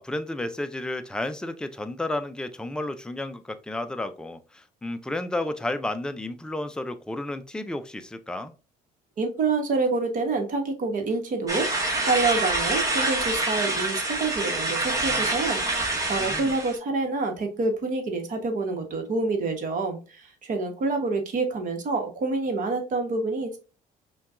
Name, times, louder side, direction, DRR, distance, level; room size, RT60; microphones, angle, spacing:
voice 1, 0.0-8.5 16.2-16.6, left 1 dB, 5° left, 0.4 m, -32 dB
voice 2, 9.2-15.6 16.1-23.6, right 3 dB, 50° right, 1.1 m, -27 dB
sound 1, 11.5-16.8, right 2 dB, 20° right, 1.2 m, -26 dB
5.6 x 2.3 x 2.4 m
cardioid pair, 110°, 17 cm